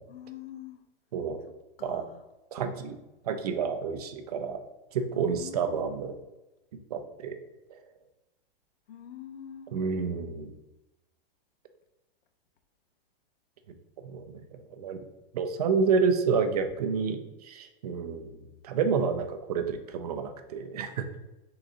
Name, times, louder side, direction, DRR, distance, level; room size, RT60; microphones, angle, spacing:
voice 1, 0.1-0.8 1.8-2.2 5.1-6.2 8.9-9.8, left 9 dB, 85° left, 8 dB, 0.7 m, -45 dB
voice 2, 1.1-1.4 1.8-2.0 2.5-3.0 3.2-4.6 4.9-6.1 6.9-7.4 7.7-7.8 9.7-10.5 14.0-14.4 14.7-15.0 15.3-18.3 18.6-21.0, right 5 dB, 45° right, 8 dB, 0.4 m, -29 dB
3.8 x 2.6 x 4.7 m, 1.0 s
supercardioid pair, 170°, 29 cm